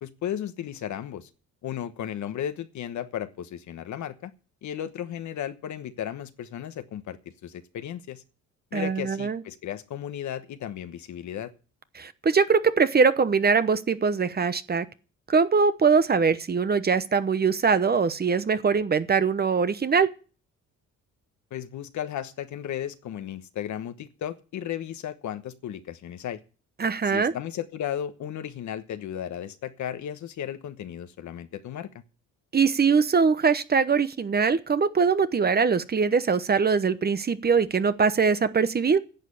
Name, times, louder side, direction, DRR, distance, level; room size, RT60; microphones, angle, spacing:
voice 1, 0.0-1.3 1.6-4.3 4.6-8.2 8.7-11.5 21.5-26.4 27.0-31.9, left 10 dB, 70° left, 1.2 m, -35 dB
voice 2, 8.7-9.4 12.0-14.8 15.3-20.1 26.8-27.3 32.5-39.0, right 5 dB, 30° right, 1.0 m, -22 dB
10.5 x 7.5 x 8.5 m
cardioid pair, 90°, 30 cm